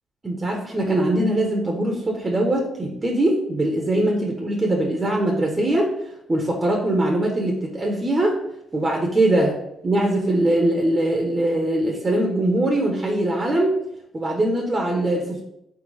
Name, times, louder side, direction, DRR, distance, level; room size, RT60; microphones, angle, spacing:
voice 1, 0.2-5.9 6.3-8.4 8.7-9.6 9.8-13.8 14.1-15.4, right 1 dB, 25° right, 0 dB, 1.3 m, -21 dB
4.4 x 4.1 x 5.2 m, 0.81 s
cardioid pair, 90°, 0 cm